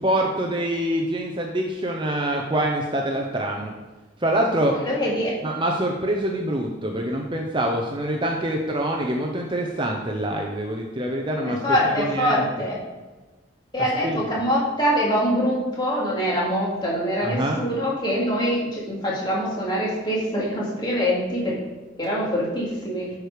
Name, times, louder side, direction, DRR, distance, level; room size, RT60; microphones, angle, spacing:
voice 1, 0.0-3.7 4.2-4.8 5.4-11.6 11.9-12.4 14.0-14.2 17.2-17.6, right 1 dB, 25° right, 1 dB, 0.7 m, -25 dB
voice 2, 4.8-5.4 11.4-12.8 13.7-21.6 22.0-23.1, equal, 25° left, -5 dB, 2.7 m, -24 dB
11.0 x 4.8 x 5.0 m, 1.2 s
head